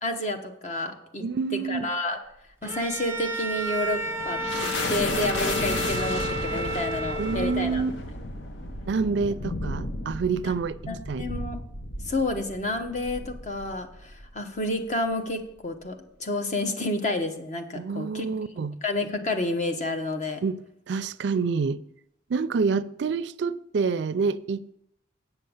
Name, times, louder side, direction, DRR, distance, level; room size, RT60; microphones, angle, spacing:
voice 1, 0.0-1.2 1.5-2.2 2.6-7.8 10.4-10.5 10.9-11.6 12.0-18.3 18.8-20.4, left 1 dB, 40° left, 1.0 m, -30 dB
voice 2, 1.2-1.9 7.2-7.9 8.9-10.8 11.1-11.2 17.7-18.8 20.4-20.6 20.9-21.8 22.3-24.7, right 5 dB, 70° right, 0.4 m, -27 dB
Bowed string instrument, 2.6-7.9, right 1 dB, 15° right, 0.7 m, -32 dB
sound 1, 3.6-14.4, left 2 dB, 85° left, 0.9 m, -33 dB
8.1 x 6.5 x 7.1 m
head